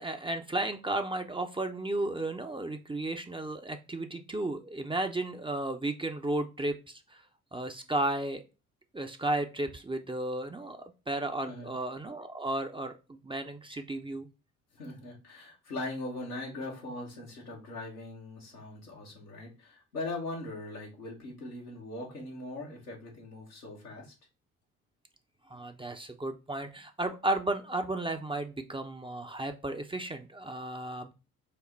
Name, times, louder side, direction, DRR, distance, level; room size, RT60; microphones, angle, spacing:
voice 1, 0.0-7.2 7.5-8.4 8.9-14.3 25.5-31.1, right 2 dB, 10° right, 6 dB, 0.6 m, -34 dB
voice 2, 14.7-24.1, left 2 dB, 85° left, -3 dB, 1.2 m, -40 dB
5.4 x 2.1 x 4.0 m, 0.31 s
figure-of-eight pair, 45°, 43 cm